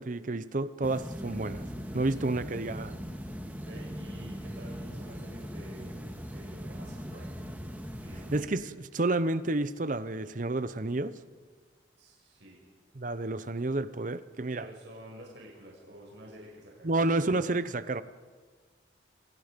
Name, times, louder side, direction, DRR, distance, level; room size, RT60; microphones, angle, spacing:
voice 1, 0.0-1.7 1.9-2.9 8.3-11.2 12.9-14.7 16.8-18.0, right 2 dB, 45° right, 0.8 m, -30 dB
sound 1, 0.8-8.4, equal, 10° right, 2.1 m, -40 dB
voice 2, 3.5-6.0 6.3-7.4 8.0-8.3 12.0-12.6 14.5-16.9, right 1 dB, 70° right, 6.4 m, -49 dB
29.0 x 26.5 x 5.3 m
head